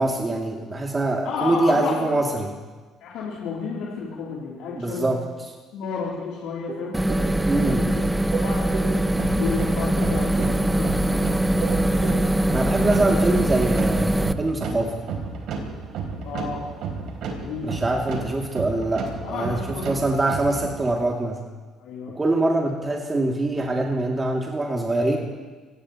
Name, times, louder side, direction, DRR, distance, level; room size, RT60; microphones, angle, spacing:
voice 1, 0.0-2.5 4.8-5.2 7.5-7.9 12.5-15.0 17.6-21.4 22.1-25.2, right 2 dB, 25° right, -1 dB, 2.5 m, -24 dB
voice 2, 1.2-2.2 3.0-5.1 5.7-7.0 7.6-8.1 8.4-11.4 16.2-16.6 17.3-17.7 19.2-19.9 21.8-22.2, left 5 dB, 75° left, -5 dB, 3.2 m, -32 dB
sound 1, 6.7-7.7 8.0-9.4 9.7-11.0 11.3-12.7 12.9-13.0, right 6 dB, 55° right, 1.4 m, -34 dB
sound 2, 6.9-14.3, right 1 dB, 10° right, 0.8 m, -22 dB
sound 3, 9.1-21.0, right 4 dB, 70° right, 3.4 m, -33 dB
24.5 x 17.5 x 3.0 m, 1.4 s
supercardioid pair, 65°, 0 cm